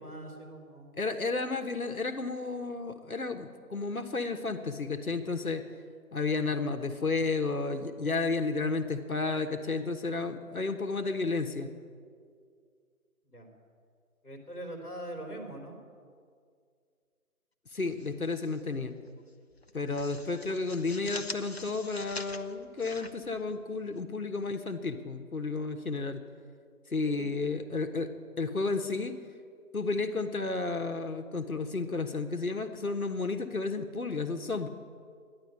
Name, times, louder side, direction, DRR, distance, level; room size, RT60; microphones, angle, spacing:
voice 1, 0.0-0.9 13.2-13.5 14.2-15.8 27.0-27.3, right 1 dB, 5° left, -14 dB, 1.5 m, -42 dB
voice 2, 1.0-5.6 6.1-11.7 17.7-18.9 19.7-26.2 26.9-28.1 28.4-29.1 29.7-34.7, left 3 dB, 70° left, 6 dB, 1.2 m, -32 dB
sound 1, 17.7-18.6 18.9-19.1 19.5-24.0, left 3 dB, 45° left, 0.7 m, -44 dB
13.0 x 10.5 x 8.3 m, 2.1 s
figure-of-eight pair, 155°, 45 cm